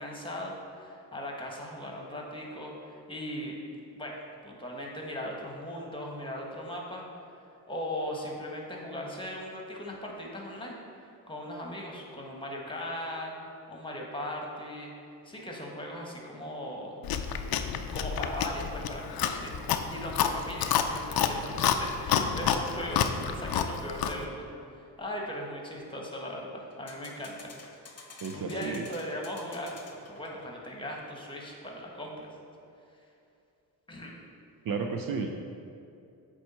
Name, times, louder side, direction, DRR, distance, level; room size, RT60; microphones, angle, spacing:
voice 1, 0.0-3.6 3.9-14.9 15.2-17.0 17.9-19.5 19.9-27.5 28.3-29.8 30.1-32.3 33.9-34.1, left 1 dB, 10° left, -1 dB, 1.5 m, -38 dB
Chewing mastication, 17.0-24.3, left 8 dB, 55° left, 0.5 m, -29 dB
sound 1, 26.7-30.7, left 4 dB, 35° left, 1.0 m, -51 dB
voice 2, 28.2-28.9 34.6-35.3, right 5 dB, 50° right, 3 dB, 0.6 m, -32 dB
8.0 x 3.3 x 4.3 m, 2.6 s
supercardioid pair, 50°, 45 cm